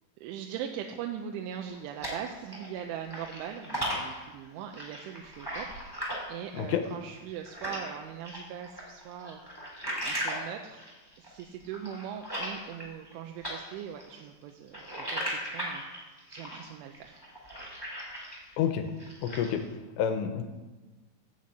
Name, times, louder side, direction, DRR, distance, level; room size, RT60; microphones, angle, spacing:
voice 1, 0.2-9.6 10.0-10.8 11.2-17.2, right 9 dB, 85° right, 3 dB, 3.2 m, -41 dB
sound 1, 1.5-2.8 3.1-7.9 8.2-13.1 13.4-18.5 18.9-19.6, equal, 5° right, 3.0 m, -37 dB
voice 2, 19.2-19.6 20.0-20.4, left 9 dB, 80° left, 7 dB, 2.8 m, -28 dB
13.5 x 6.3 x 8.4 m, 1.2 s
omnidirectional pair, 5.4 m